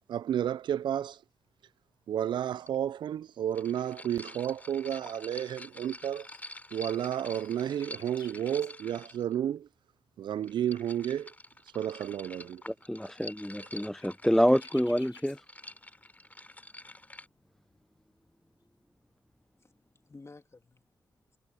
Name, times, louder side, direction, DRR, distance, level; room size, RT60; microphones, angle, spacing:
voice 1, 0.1-1.2 2.1-6.3 6.7-9.7 10.2-11.3 11.7-12.6, right 10 dB, 75° right, 0.4 m, -32 dB
sound 1, 1.6-1.8 2.0-2.7 2.9-4.2 4.8-5.2 5.5-9.2 9.6-9.7 10.0-10.5 10.9-16.2 16.5-18.8, left 7 dB, 70° left, 5.0 m, -61 dB
sound 2, 2.7-2.8 3.5-9.4 10.3-17.3, left 1 dB, 20° left, 3.0 m, -48 dB
voice 2, 12.7-15.4, equal, 5° left, 0.4 m, -27 dB
voice 3, 19.4-21.4, left 3 dB, 35° left, 2.4 m, -55 dB
supercardioid pair, 45°, 8 cm